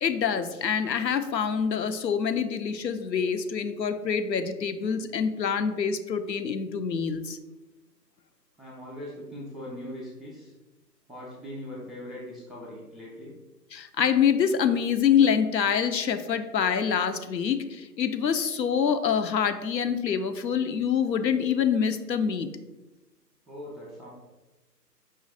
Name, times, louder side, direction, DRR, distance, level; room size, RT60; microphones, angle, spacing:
voice 1, 0.0-7.4 13.7-22.5, left 7 dB, 85° left, 9 dB, 0.6 m, -26 dB
voice 2, 8.6-10.5 11.1-13.4 23.5-24.1, left 1 dB, ahead, -7 dB, 0.4 m, -40 dB
5.1 x 2.5 x 3.8 m, 1.1 s
figure-of-eight pair, 145°, 50 cm